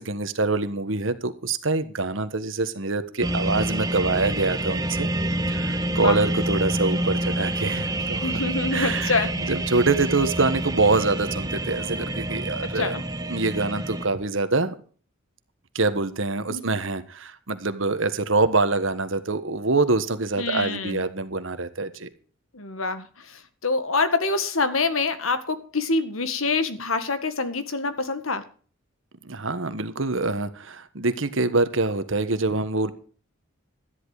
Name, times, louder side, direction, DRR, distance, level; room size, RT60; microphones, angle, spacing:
voice 1, 0.0-5.1 5.5-8.3 8.7-12.9 13.3-14.8 15.7-22.1 29.2-32.9, right 3 dB, 70° right, 11 dB, 1.4 m, -25 dB
sound 1, 3.2-14.1, right 1 dB, 20° right, 1.1 m, -27 dB
voice 2, 8.2-9.5 12.6-13.0 16.5-16.6 20.4-21.0 22.5-28.4, left 3 dB, 85° left, 11 dB, 1.8 m, -26 dB
13.0 x 11.0 x 4.9 m, 0.41 s
head